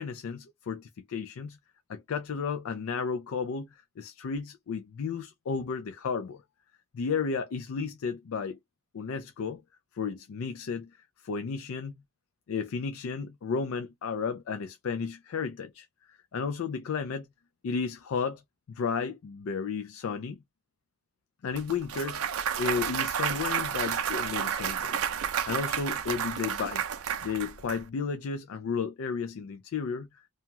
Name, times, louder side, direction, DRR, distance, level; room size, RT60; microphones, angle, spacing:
voice 1, 0.0-1.6 1.9-3.7 4.0-6.4 6.9-8.6 8.9-9.6 10.0-10.9 11.2-11.9 12.5-15.9 16.3-17.3 17.6-18.4 18.7-20.4 21.4-26.8 27.2-30.1, left 5 dB, 70° left, 0.4 m, -33 dB
Clapping / Cheering / Applause, 21.6-27.8, right 8 dB, 80° right, 0.5 m, -31 dB
2.7 x 2.3 x 2.8 m
head